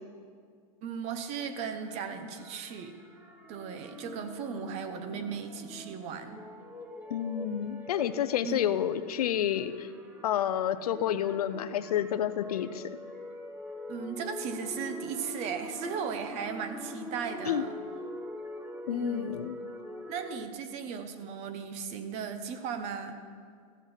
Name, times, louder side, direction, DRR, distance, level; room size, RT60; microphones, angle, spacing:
voice 1, 0.8-3.0 3.5-6.4 8.4-8.6 13.9-17.7 18.9-19.4 20.1-23.2, right 6 dB, 35° right, 9 dB, 0.9 m, -36 dB
sound 1, 1.4-20.3, left 1 dB, 10° right, 1.1 m, -44 dB
voice 2, 7.1-9.9 10.2-12.8 17.5-17.6 18.9-19.5, left 10 dB, 90° left, 13 dB, 0.6 m, -29 dB
14.0 x 7.3 x 5.7 m, 2.2 s
supercardioid pair, 145°, 19 cm